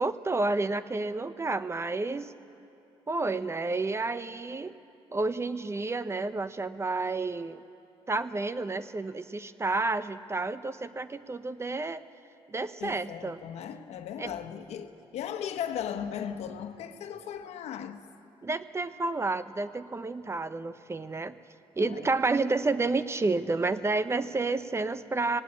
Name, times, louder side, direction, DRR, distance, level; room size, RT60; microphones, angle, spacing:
voice 1, 0.0-2.3 3.1-4.8 5.1-7.6 8.1-12.0 12.5-13.4 14.2-14.3 18.4-21.3 21.8-25.4, right 3 dB, 25° right, 0.7 m, -30 dB
voice 2, 12.8-18.0 21.8-22.1, left 9 dB, 85° left, 1.2 m, -37 dB
25.5 x 18.0 x 8.5 m
cardioid pair, 85°, 11 cm